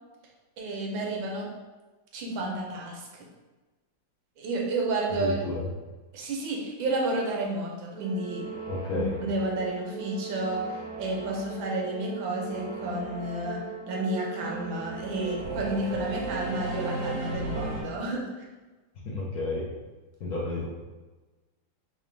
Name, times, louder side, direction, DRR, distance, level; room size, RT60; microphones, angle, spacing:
voice 1, 0.6-1.5 2.1-3.2 4.4-5.4 6.1-8.5 8.9-18.3, right 2 dB, 85° right, -1 dB, 1.5 m, -31 dB
voice 2, 5.2-5.7 8.7-9.1 19.0-19.7 20.2-20.7, left 2 dB, 60° left, -5 dB, 1.1 m, -31 dB
Singing / Musical instrument, 7.9-17.8, right 3 dB, 50° right, 0.8 m, -36 dB
4.0 x 2.5 x 3.2 m, 1.2 s
omnidirectional pair, 2.1 m